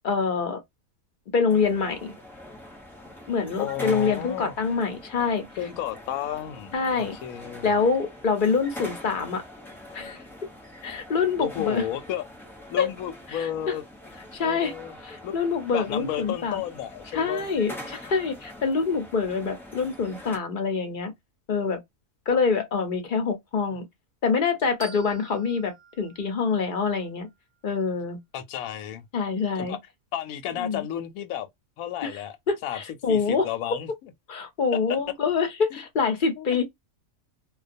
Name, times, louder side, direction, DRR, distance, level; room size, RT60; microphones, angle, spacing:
voice 1, 0.0-0.6 1.3-2.1 3.3-5.4 6.7-7.1 7.6-9.4 9.9-10.2 10.8-11.8 12.8-12.9 13.3-13.5 14.3-14.7 15.0-16.6 17.1-21.1 21.5-21.8 22.3-23.8 24.2-27.3 27.6-28.2 29.1-29.8 30.6-30.8 32.0-32.2 32.5-33.5 34.3-36.6, left 5 dB, 45° left, 0.7 m, -25 dB
sound 1, 1.5-20.4, left 1 dB, ahead, 0.8 m, -44 dB
voice 2, 3.6-4.6 5.6-7.7 11.4-12.2 12.7-13.8 14.4-14.9 15.2-15.4 15.7-17.5 22.3-22.4 28.3-29.0 29.6-29.8 30.1-31.5 31.8-32.4 32.6-32.8 33.1-34.1 34.9-35.0 35.7-35.8 36.4-36.6, left 10 dB, 90° left, 1.0 m, -33 dB
Hand Bells F Single, 24.8-27.6, right 4 dB, 55° right, 0.8 m, -48 dB
2.3 x 2.3 x 2.5 m
omnidirectional pair, 1.4 m